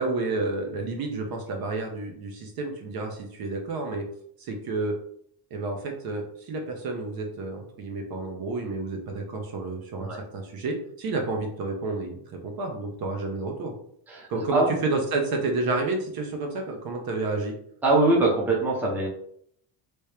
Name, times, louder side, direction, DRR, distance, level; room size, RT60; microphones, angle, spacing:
voice 1, 0.0-4.1 4.4-4.9 5.5-13.7 14.3-17.5, right 3 dB, 45° right, 2 dB, 0.8 m, -30 dB
voice 2, 14.1-14.7 17.8-19.1, right 2 dB, 5° right, -4 dB, 0.6 m, -23 dB
3.2 x 2.8 x 3.2 m, 0.66 s
cardioid pair, 165°, 50 cm